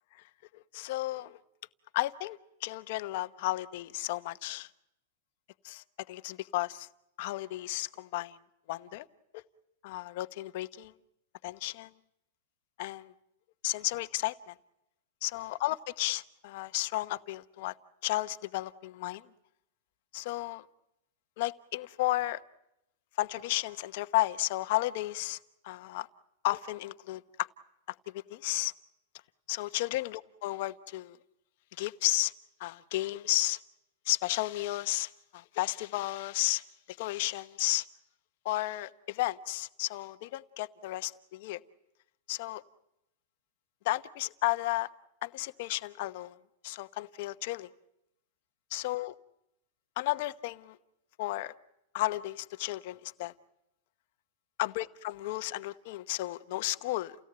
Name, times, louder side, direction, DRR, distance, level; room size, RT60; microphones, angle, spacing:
voice 1, 0.5-1.4 1.9-4.7 5.6-6.9 7.2-8.4 8.7-9.0 9.3-9.4 9.8-10.9 11.4-11.9 12.8-13.1 13.6-14.5 15.2-17.7 18.0-19.3 20.1-20.6 21.4-22.4 23.2-25.4 25.6-26.1 26.4-27.5 28.1-28.7 29.5-31.2 31.8-32.3 32.6-33.6 34.0-37.9 38.4-41.6 42.3-42.6 43.8-44.9 45.2-46.3 46.6-47.7 48.7-49.1 50.0-50.8 51.2-51.5 51.9-53.3 54.6-57.2, left 17 dB, 40° left, 12 dB, 1.0 m, -33 dB
30.0 x 17.5 x 8.9 m, 0.85 s
supercardioid pair, 175°, 0 cm